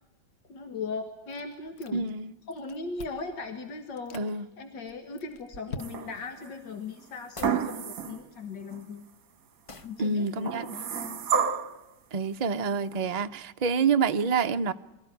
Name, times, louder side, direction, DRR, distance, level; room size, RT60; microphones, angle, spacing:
voice 1, 0.5-2.1 2.5-4.2 4.6-9.1 9.8-11.2, left 4 dB, 85° left, 2.3 m, -38 dB
Chewing mastication, 1.3-2.2 2.5-3.3 3.9-4.3 4.9-6.3, left 4 dB, 45° left, 1.2 m, -44 dB
voice 2, 1.9-2.3 4.1-4.5 10.0-10.8 12.1-14.7, right 5 dB, 40° right, 0.6 m, -27 dB
sound 1, 5.8-6.4 7.4-8.3 8.7-8.8 10.4-11.8 12.9-13.0, right 7 dB, 55° right, 1.4 m, -30 dB
sound 2, 7.3-7.7 9.7-10.0, left 2 dB, 25° left, 0.7 m, -43 dB
23.5 x 14.5 x 9.9 m
omnidirectional pair, 1.9 m